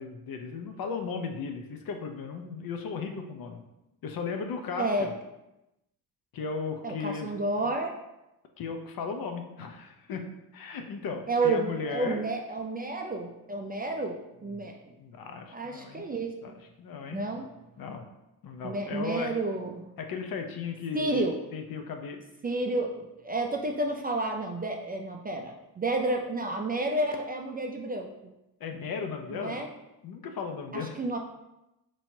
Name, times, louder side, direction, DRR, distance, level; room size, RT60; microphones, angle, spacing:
voice 1, 0.0-3.6 4.0-5.1 6.3-7.7 8.6-10.2 10.5-12.2 14.4-14.7 15.0-16.0 16.4-16.5 16.8-17.2 17.8-18.0 18.4-19.3 20.0-21.2 21.5-22.2 28.6-29.6 30.0-30.9, left 5 dB, 55° left, 5 dB, 0.7 m, -36 dB
voice 2, 4.8-5.1 6.8-7.9 11.3-14.9 15.5-16.4 17.1-17.5 18.6-19.9 20.9-21.4 22.4-28.1 29.3-29.7 30.7-31.2, right 2 dB, 20° right, 2 dB, 0.4 m, -30 dB
4.2 x 3.1 x 2.7 m, 0.94 s
supercardioid pair, 60°, 44 cm